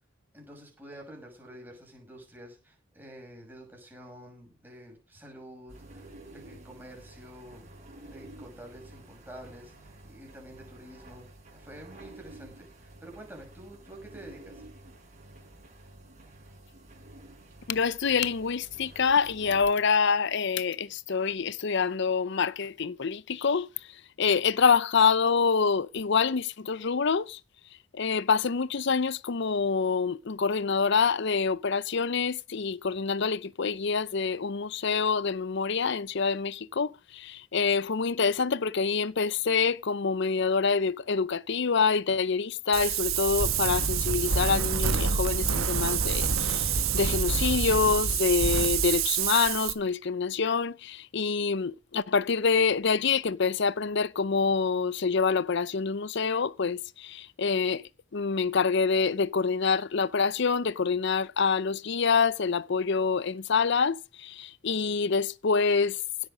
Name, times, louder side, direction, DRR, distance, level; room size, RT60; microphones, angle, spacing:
voice 1, 0.3-6.0 6.3-7.7 8.1-14.6, right 1 dB, 10° right, 6.3 m, -48 dB
sound 1, 5.7-19.6, right 1 dB, 35° right, 5.7 m, -50 dB
voice 2, 17.7-23.7 24.2-27.4 27.9-66.0, left 5 dB, 55° left, 0.6 m, -26 dB
Wind, 42.7-49.7, right 6 dB, 80° right, 1.4 m, -27 dB
16.5 x 8.2 x 5.1 m
head